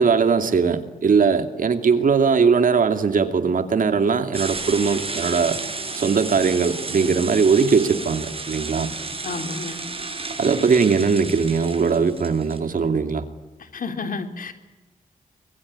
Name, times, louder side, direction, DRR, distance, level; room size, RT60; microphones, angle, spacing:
voice 1, 0.0-5.6 5.9-8.9 10.4-13.2, right 5 dB, 65° right, 8 dB, 2.7 m, -20 dB
sound 1, 4.3-12.6, right 3 dB, 40° right, 6.5 m, -32 dB
voice 2, 9.2-9.8 13.7-14.5, left 4 dB, 70° left, 7 dB, 3.4 m, -30 dB
25.0 x 21.5 x 9.8 m, 1.1 s
cardioid pair, 70°, 15 cm